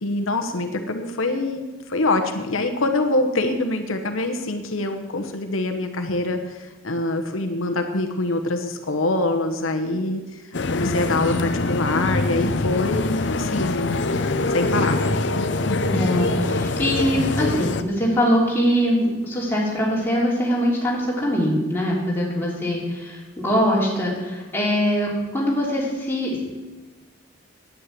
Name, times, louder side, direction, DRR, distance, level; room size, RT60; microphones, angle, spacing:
voice 1, 0.0-10.4 10.7-14.0 14.5-15.0, left 2 dB, 85° left, 6 dB, 1.1 m, -24 dB
sound 1, 10.5-17.8, left 2 dB, 60° left, 0.6 m, -24 dB
voice 2, 15.9-26.4, equal, 10° left, -5 dB, 3.2 m, -22 dB
9.8 x 9.4 x 7.5 m, 1.2 s
head